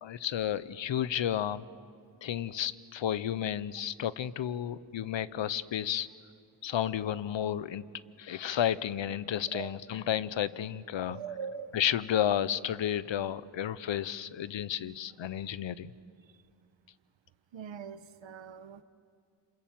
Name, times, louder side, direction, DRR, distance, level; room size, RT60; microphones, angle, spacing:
voice 1, 0.0-1.6 2.2-6.1 6.6-7.9 8.2-11.2 11.7-15.9, left 10 dB, 85° left, 17 dB, 0.8 m, -32 dB
voice 2, 11.0-11.8 16.3-16.4 17.5-18.8, right 7 dB, 90° right, 12 dB, 1.1 m, -42 dB
28.0 x 26.5 x 7.6 m, 2.3 s
cardioid pair, 75°, 44 cm